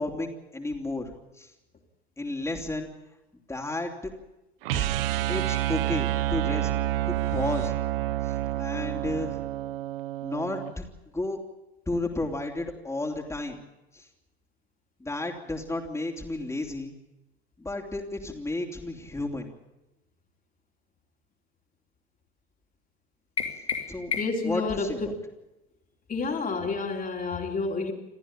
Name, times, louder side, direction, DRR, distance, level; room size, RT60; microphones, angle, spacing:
voice 1, 0.0-1.5 2.2-2.9 3.5-3.9 4.7-4.9 5.3-6.7 7.1-7.7 8.2-9.4 10.2-10.8 11.1-11.4 11.9-13.6 13.9-14.1 15.0-16.9 17.6-19.5 23.9-24.1 24.4-25.1, left 2 dB, 10° left, 1 dB, 3.4 m, -32 dB
sound 1, 4.6-10.7, right 15 dB, 60° right, 0.9 m, -28 dB
sound 2, 23.4-24.6, left 6 dB, 80° left, 2.3 m, -32 dB
voice 2, 24.2-24.9 26.1-27.9, left 4 dB, 25° left, 1 dB, 3.6 m, -29 dB
28.5 x 14.5 x 8.7 m, 0.98 s
figure-of-eight pair, 70°, 32 cm